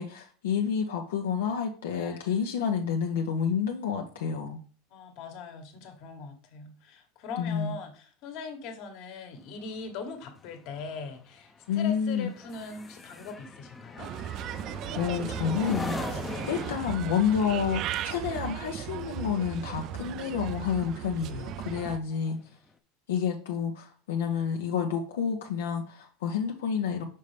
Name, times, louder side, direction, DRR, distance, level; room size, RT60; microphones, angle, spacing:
voice 1, 0.0-4.6 7.4-7.7 11.7-12.3 15.0-22.4 23.1-27.0, left 7 dB, 90° left, 2 dB, 0.8 m, -29 dB
voice 2, 1.9-2.4 4.9-14.1 16.1-16.3 21.7-22.5, left 5 dB, 55° left, 5 dB, 1.4 m, -41 dB
sound 1, 9.3-21.0 21.4-21.7, left 3 dB, 15° left, 0.6 m, -41 dB
Bird, 14.0-22.0, right 12 dB, 45° right, 0.3 m, -36 dB
5.5 x 5.5 x 3.3 m, 0.39 s
supercardioid pair, 125°, 0 cm